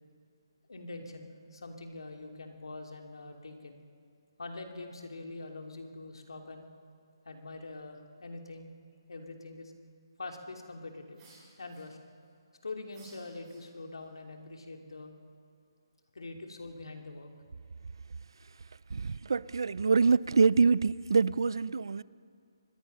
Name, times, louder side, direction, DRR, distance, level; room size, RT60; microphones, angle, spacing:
voice 1, 0.7-3.8 4.4-6.6 7.2-8.7 9.1-9.7 10.2-11.2 11.6-12.0 12.6-15.1 16.1-17.3, left 2 dB, 85° left, 3.0 m, -44 dB
sound 1, 11.1-12.3 12.9-14.0, right 2 dB, 10° right, 6.8 m, -60 dB
voice 2, 18.9-22.0, right 4 dB, 65° right, 0.5 m, -25 dB
25.0 x 21.0 x 5.7 m
hypercardioid pair, 170°, 3 cm